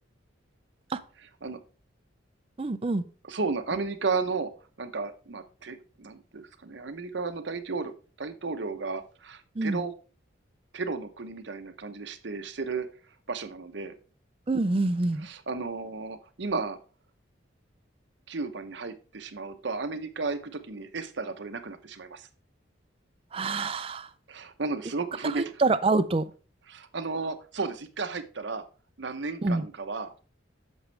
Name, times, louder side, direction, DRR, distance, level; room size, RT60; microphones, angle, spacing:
voice 1, 2.6-3.0 9.6-9.8 14.5-15.3 23.3-24.1 25.3-26.2 29.4-29.6, right 3 dB, 30° right, 0.4 m, -26 dB
voice 2, 3.3-4.5 4.8-9.9 10.7-12.9 13.3-13.9 15.2-16.8 18.3-22.3 24.3-25.5 26.7-28.7 29.0-30.1, right 4 dB, 65° right, 0.8 m, -33 dB
8.0 x 6.2 x 3.3 m
head